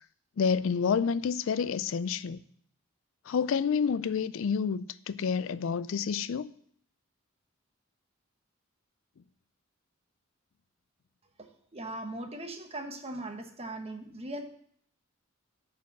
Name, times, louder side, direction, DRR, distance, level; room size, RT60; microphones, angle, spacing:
voice 1, 0.4-2.4 3.3-6.5, left 6 dB, 70° left, 0.4 m, -29 dB
voice 2, 11.4-14.4, right 1 dB, 30° right, 1.1 m, -39 dB
11.0 x 4.5 x 7.3 m
head